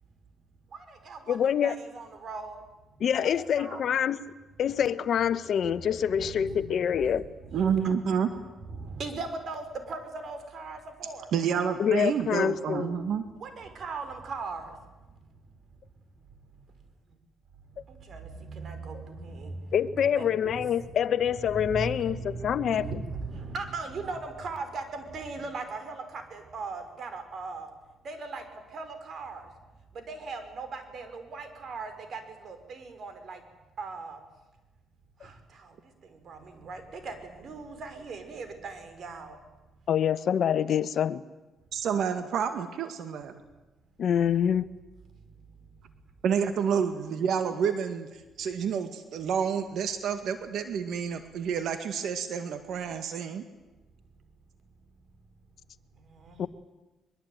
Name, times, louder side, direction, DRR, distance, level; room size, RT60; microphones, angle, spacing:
voice 1, 0.7-2.6 3.2-3.8 5.6-7.9 8.3-11.3 13.3-14.8 17.9-27.7 28.0-28.4 28.7-29.5 29.9-33.4 33.8-34.2 35.2-35.8 36.0-39.4 56.0-56.5, right 3 dB, 55° right, 8 dB, 5.2 m, -39 dB
voice 2, 1.3-1.7 3.0-4.2 4.6-7.2 11.8-12.9 19.7-22.9 39.9-41.2 44.0-44.7 56.4-56.5, left 8 dB, 65° left, 14 dB, 1.1 m, -26 dB
voice 3, 7.5-8.3 11.3-13.2 41.7-43.3 46.2-48.1 48.4-53.4, right 7 dB, 70° right, 9 dB, 1.9 m, -29 dB
23.0 x 23.0 x 9.3 m, 1.1 s
cardioid pair, 90°, 0 cm